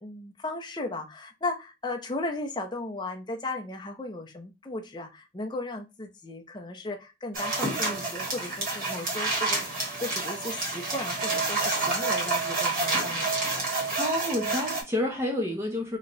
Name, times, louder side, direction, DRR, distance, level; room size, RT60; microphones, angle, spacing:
voice 1, 0.0-13.3, left 2 dB, 25° left, 0.6 m, -36 dB
sound 1, 7.3-14.8, right 3 dB, 50° right, 1.3 m, -29 dB
voice 2, 14.0-16.0, left 1 dB, 15° right, 0.7 m, -29 dB
3.0 x 2.3 x 3.9 m
head